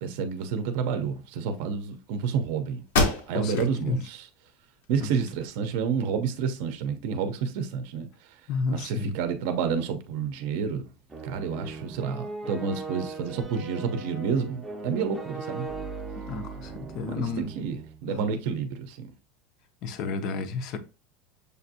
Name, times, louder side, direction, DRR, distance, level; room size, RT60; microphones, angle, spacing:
voice 1, 0.0-2.8 3.3-4.3 4.9-8.1 8.7-10.9 11.2-15.7 17.0-19.1, right 6 dB, 55° right, 0.6 m, -29 dB
popping paper bag, 2.3-2.4 2.9-3.7 4.2-4.3 4.8-5.7, left 2 dB, 80° left, 1.0 m, -28 dB
voice 2, 3.3-4.0 5.0-5.1 8.5-9.1 16.2-17.5 18.1-18.4 19.8-20.8, left 4 dB, 40° left, 0.5 m, -31 dB
sound 1, 11.1-18.0, right 3 dB, 10° right, 0.6 m, -39 dB
6.6 x 2.6 x 2.7 m
supercardioid pair, 170°, 0 cm